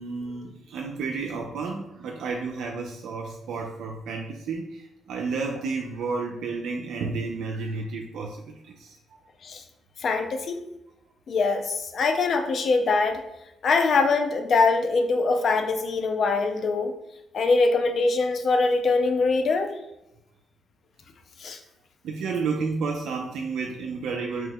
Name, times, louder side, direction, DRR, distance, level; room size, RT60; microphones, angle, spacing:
voice 1, 0.0-9.2 22.0-24.5, right 4 dB, 75° right, 1 dB, 0.3 m, -31 dB
voice 2, 10.0-10.6 11.3-13.2 13.6-16.9 17.3-19.7 21.4-21.6, left 3 dB, 55° left, 6 dB, 0.4 m, -23 dB
2.8 x 2.2 x 3.4 m, 0.89 s
cardioid pair, 90°, 0 cm